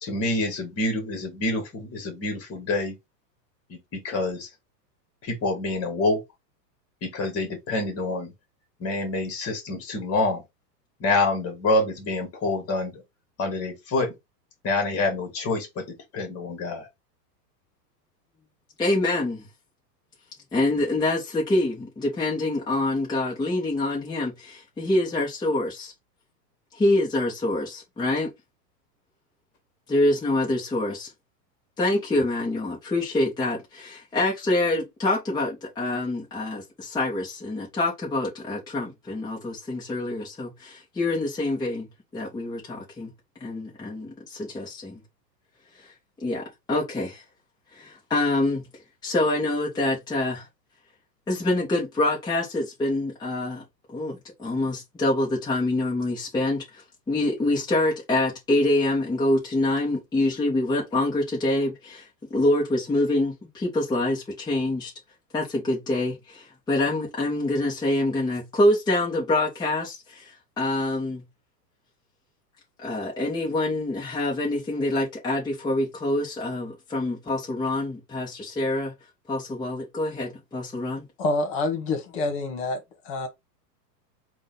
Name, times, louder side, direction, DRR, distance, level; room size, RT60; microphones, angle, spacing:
voice 1, 0.0-2.9 3.7-4.5 5.2-6.2 7.0-8.3 8.8-10.4 11.0-13.0 13.4-14.1 14.6-16.9, left 2 dB, 30° left, 2.0 m, -27 dB
voice 2, 18.8-19.5 20.5-25.9 26.7-28.3 29.9-31.1 31.8-43.1 43.4-45.0 45.8-45.9 46.2-47.2 47.7-48.7 49.0-50.5 51.3-53.6 53.9-64.9 65.3-71.2 72.8-78.9 79.3-81.0, left 2 dB, 10° left, 1.1 m, -26 dB
voice 3, 81.2-83.3, left 2 dB, 45° left, 1.6 m, -27 dB
3.8 x 2.6 x 3.9 m
hypercardioid pair, 130°, 50 cm